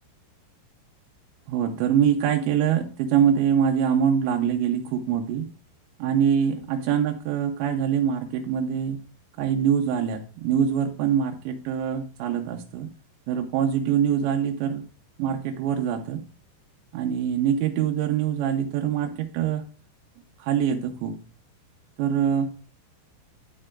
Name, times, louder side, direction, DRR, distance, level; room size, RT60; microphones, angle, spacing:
voice 1, 1.5-5.5 6.0-9.0 9.4-12.9 13.3-14.8 15.2-16.2 16.9-19.6 20.4-21.2 22.0-22.5, right 8 dB, 90° right, 2 dB, 3.1 m, -24 dB
10.0 x 6.7 x 2.4 m, 0.38 s
omnidirectional pair, 5.1 m